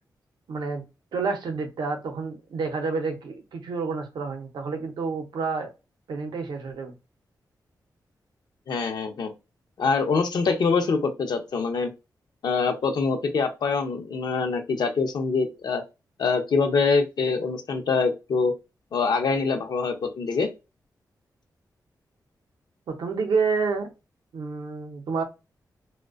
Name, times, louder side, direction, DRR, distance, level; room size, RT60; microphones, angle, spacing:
voice 1, 0.5-0.8 1.1-5.7 6.1-6.9 22.9-23.9 24.3-25.2, right 4 dB, 85° right, 0.6 m, -29 dB
voice 2, 8.7-9.3 9.8-11.9 12.4-15.8 16.2-18.5 18.9-20.5, left 4 dB, 70° left, 0.5 m, -24 dB
2.5 x 2.1 x 2.3 m
wide cardioid pair, 95°, 7 cm